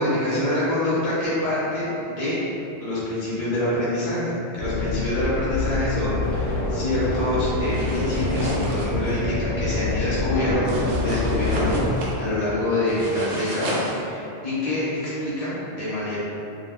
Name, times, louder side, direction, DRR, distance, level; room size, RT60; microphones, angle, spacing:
voice 1, 0.0-2.4 2.8-16.2, left 1 dB, 40° left, -10 dB, 0.7 m, -26 dB
sound 1, 4.6-11.9, left 2 dB, 85° left, 1.0 m, -26 dB
sound 2, 7.6-9.1 10.7-12.2 12.9-13.9, right 1 dB, 85° right, 0.9 m, -33 dB
2.7 x 2.1 x 3.5 m, 2.7 s
omnidirectional pair, 1.1 m